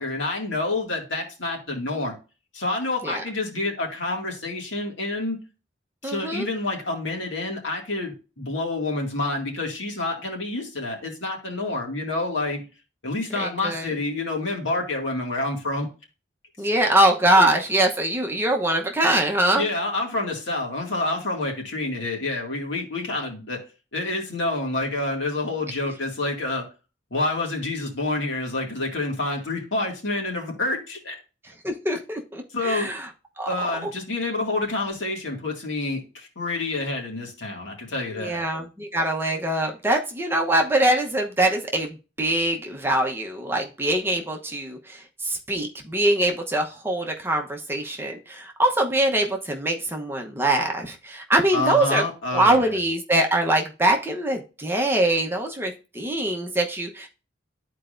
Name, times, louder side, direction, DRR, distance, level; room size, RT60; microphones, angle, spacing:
voice 1, 0.0-2.1 2.5-5.4 6.0-12.6 13.0-15.9 17.4-17.5 19.5-23.6 23.9-26.7 27.1-31.2 32.5-32.9 33.5-38.4 51.5-52.7, left 2 dB, 80° left, 0 dB, 2.2 m, -28 dB
voice 2, 6.0-6.5 13.4-13.9 16.6-19.7 31.6-33.1 33.4-33.5 38.1-52.0 52.3-57.1, right 1 dB, 10° right, 2 dB, 0.9 m, -23 dB
12.0 x 4.5 x 2.6 m, 0.32 s
head